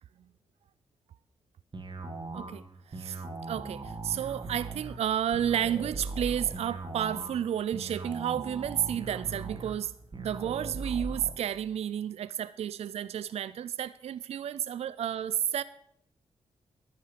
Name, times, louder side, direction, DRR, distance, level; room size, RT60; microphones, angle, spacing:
sound 1, 1.7-11.3, right 3 dB, 45° right, 2.1 m, -39 dB
voice 1, 2.9-3.2 3.5-15.6, right 10 dB, 65° right, 16 dB, 0.4 m, -31 dB
10.5 x 9.4 x 6.8 m, 0.75 s
supercardioid pair, 45°, 11 cm